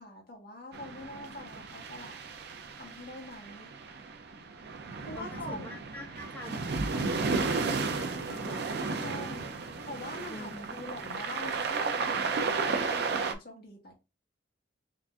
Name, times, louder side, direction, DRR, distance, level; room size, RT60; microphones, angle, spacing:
voice 1, 0.0-2.2 2.8-3.7 5.0-5.7 9.0-9.5 9.9-13.9, left 1 dB, 55° left, 1.4 m, -44 dB
sound 1, 0.7-13.3, right 4 dB, 60° right, 0.5 m, -33 dB
voice 2, 5.1-6.6 6.9-9.2 10.3-10.9, left 1 dB, 10° left, 1.2 m, -46 dB
3.8 x 2.5 x 3.4 m
head